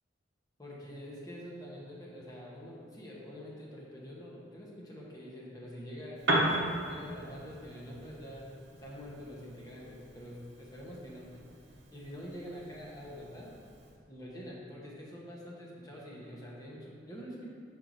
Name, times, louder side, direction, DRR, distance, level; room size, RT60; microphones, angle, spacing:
voice 1, 0.6-8.5 8.8-11.4 11.9-13.5 14.1-17.5, equal, 20° left, -5 dB, 1.1 m, -46 dB
Piano, 6.1-14.0, right 1 dB, 65° right, 0.9 m, -37 dB
6.7 x 4.5 x 4.0 m, 2.2 s
head